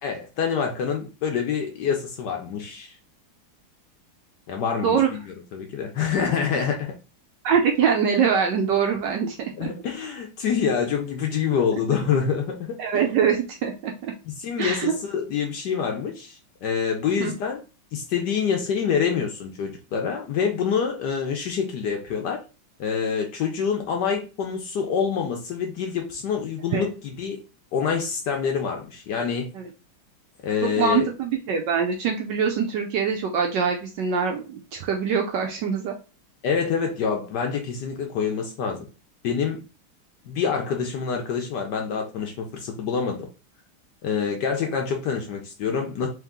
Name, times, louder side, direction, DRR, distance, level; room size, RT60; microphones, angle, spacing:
voice 1, 0.0-2.9 4.5-6.9 9.6-13.0 14.3-17.6 17.9-22.4 22.8-27.4 27.7-29.5 30.4-31.1 36.4-38.9 39.2-39.6 40.3-43.3 44.0-46.1, left 6 dB, 70° left, 1.1 m, -26 dB
voice 2, 7.4-9.7 12.8-14.1 14.6-14.9 17.2-17.3 26.7-26.9 29.5-29.6 30.6-35.9, right 6 dB, 75° right, 1.0 m, -23 dB
3.6 x 2.9 x 3.5 m
omnidirectional pair, 2.3 m